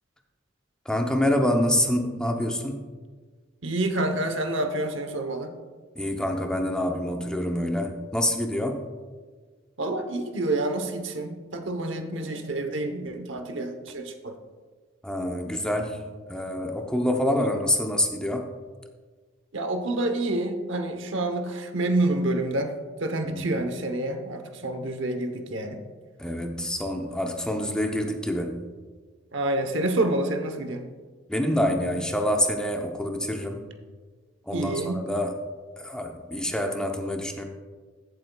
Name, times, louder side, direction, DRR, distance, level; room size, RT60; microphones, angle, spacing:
voice 1, 0.8-2.8 5.9-8.8 15.0-18.5 23.2-23.5 26.2-28.7 31.3-33.7 34.4-35.4 35.8-37.4, left 1 dB, 5° left, 3 dB, 0.6 m, -26 dB
voice 2, 3.6-5.6 9.8-14.4 17.4-17.5 19.5-22.7 23.0-25.8 29.3-30.9 34.5-35.0, right 2 dB, 70° right, 6 dB, 0.9 m, -28 dB
15.0 x 7.8 x 2.3 m, 1.4 s
head